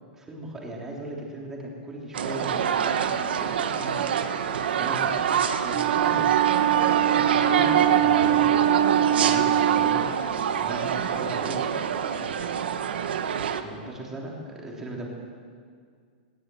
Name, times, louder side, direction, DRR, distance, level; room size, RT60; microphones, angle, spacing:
voice 1, 0.2-3.0 3.4-5.2 5.6-6.2 7.0-8.7 9.1-10.3 10.6-11.7 13.3-15.1, right 1 dB, 10° right, -2 dB, 3.5 m, -38 dB
sound 1, 2.1-13.6, right 8 dB, 90° right, 1.7 m, -26 dB
Wind instrument woodwind instrument, 5.7-10.1, right 11 dB, 35° right, 0.9 m, -23 dB
20.0 x 19.0 x 7.9 m, 2.1 s
supercardioid pair, 175°, 5 cm